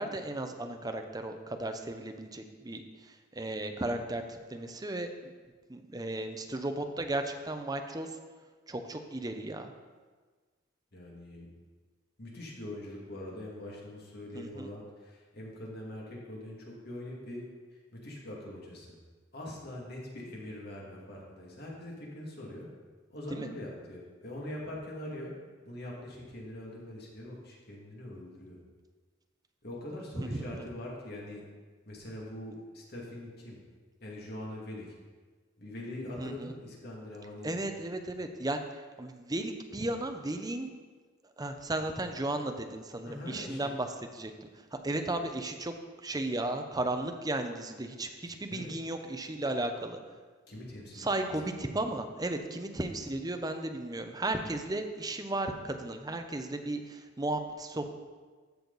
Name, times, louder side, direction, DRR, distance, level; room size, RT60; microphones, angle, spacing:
voice 1, 0.0-5.3 5.7-8.1 8.7-9.7 14.3-14.7 23.3-23.5 30.2-30.6 36.2-36.5 37.4-38.6 39.0-40.7 41.4-44.5 44.8-45.7 46.0-50.0 50.9-57.9, right 2 dB, 20° right, 6 dB, 0.7 m, -35 dB
voice 2, 10.9-11.5 12.2-17.4 17.9-19.0 19.3-22.7 23.1-25.3 25.6-28.6 29.6-31.4 31.9-33.6 34.0-34.9 35.6-37.5 43.1-43.7 48.5-48.7 50.5-51.3, left 1 dB, 55° left, -3 dB, 2.4 m, -43 dB
13.5 x 6.5 x 4.0 m, 1.4 s
head